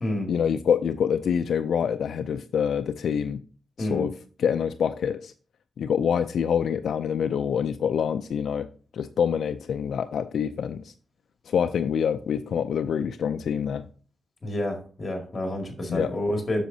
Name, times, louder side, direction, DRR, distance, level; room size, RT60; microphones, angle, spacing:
voice 1, 0.3-3.4 3.8-4.1 4.4-5.3 5.8-8.7 8.9-10.9 11.5-13.8 15.9-16.1, left 7 dB, 70° left, 0.3 m, -26 dB
voice 2, 14.4-16.6, left 1 dB, 30° left, 1.9 m, -29 dB
7.9 x 6.2 x 2.7 m
wide cardioid pair, 125°, 0 cm